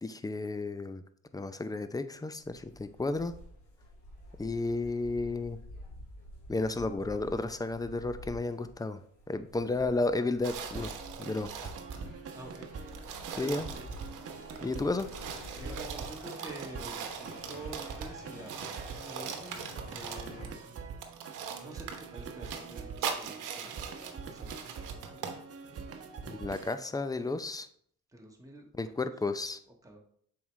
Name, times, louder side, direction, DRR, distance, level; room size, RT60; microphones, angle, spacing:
voice 1, 0.0-1.0 1.3-3.3 4.4-5.6 6.5-9.0 9.3-10.9 11.2-11.7 13.4-13.7 14.6-15.1 26.3-27.7 28.8-29.6, left 3 dB, 10° left, 11 dB, 0.5 m, -32 dB
sound 1, 2.4-20.4, equal, 75° left, 2.5 m, -50 dB
sound 2, 10.4-12.1 12.5-12.6 12.9-18.2 18.5-20.5 21.0-25.4, right 7 dB, 85° right, 1.0 m, -41 dB
sound 3, 10.8-26.7, right 5 dB, 50° right, 1.0 m, -44 dB
voice 2, 11.9-12.7 13.3-13.9 15.5-18.6 18.9-19.6 19.9-20.8 21.6-25.3 28.1-28.9 29.8-30.0, right 1 dB, 10° right, 0 dB, 1.4 m, -48 dB
7.2 x 4.7 x 3.2 m, 0.63 s
cardioid pair, 90°, 30 cm